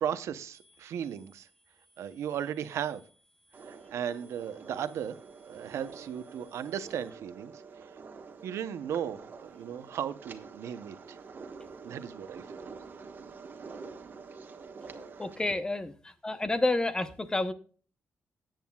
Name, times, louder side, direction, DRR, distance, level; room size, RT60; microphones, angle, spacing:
voice 1, 0.0-1.5 2.0-3.0 3.7-5.2 5.5-7.5 8.4-11.2 11.8-12.4, right 9 dB, 90° right, 0.8 m, -36 dB
sound 1, 0.5-7.1, left 1 dB, 45° left, 3.7 m, -66 dB
sound 2, 3.5-15.5, right 5 dB, 45° right, 1.3 m, -47 dB
voice 2, 15.2-15.9 16.2-17.5, left 2 dB, 15° left, 0.8 m, -29 dB
18.0 x 9.1 x 2.3 m
wide cardioid pair, 130°, 5 cm